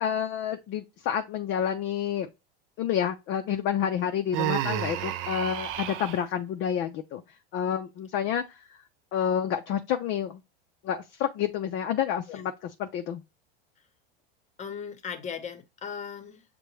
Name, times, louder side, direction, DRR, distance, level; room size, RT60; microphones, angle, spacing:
voice 1, 0.0-2.3 2.8-7.2 7.5-8.6 9.1-10.4 10.8-13.2, left 9 dB, 40° left, 0.5 m, -29 dB
Human voice, 4.3-6.2, right 12 dB, 40° right, 0.5 m, -30 dB
voice 2, 14.6-16.4, left 7 dB, 25° left, 0.9 m, -38 dB
6.5 x 2.2 x 3.1 m
supercardioid pair, 120°, 30 cm